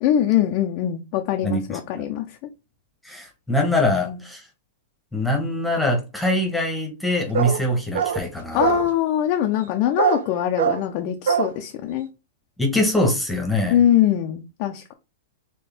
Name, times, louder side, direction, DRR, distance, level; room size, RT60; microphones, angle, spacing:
voice 1, 0.0-2.4 3.9-4.2 8.5-12.1 13.7-14.9, left 11 dB, 50° left, 0.6 m, -22 dB
voice 2, 1.4-2.0 3.0-4.4 5.1-8.7 12.6-13.8, left 1 dB, 5° left, 1.3 m, -23 dB
sound 1, 7.3-7.7 7.9-8.3 8.6-8.9 10.0-10.3 10.6-10.8 11.3-11.5, right 8 dB, 70° right, 0.5 m, -22 dB
4.3 x 3.2 x 3.5 m
hypercardioid pair, 115°, 0 cm